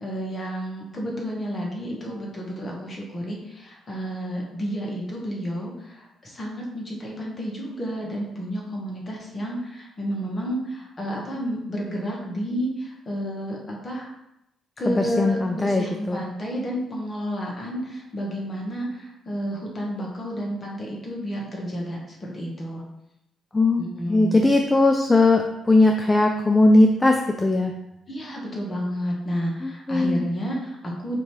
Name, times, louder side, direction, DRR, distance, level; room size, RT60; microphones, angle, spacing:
voice 1, 0.0-14.1 14.8-22.8 23.8-24.4 28.1-31.2, equal, 35° left, -2 dB, 1.2 m, -31 dB
voice 2, 14.9-16.2 23.5-27.7 29.6-30.3, left 2 dB, 15° left, 3 dB, 0.4 m, -19 dB
5.1 x 2.7 x 3.1 m, 0.86 s
cardioid pair, 90°, 0 cm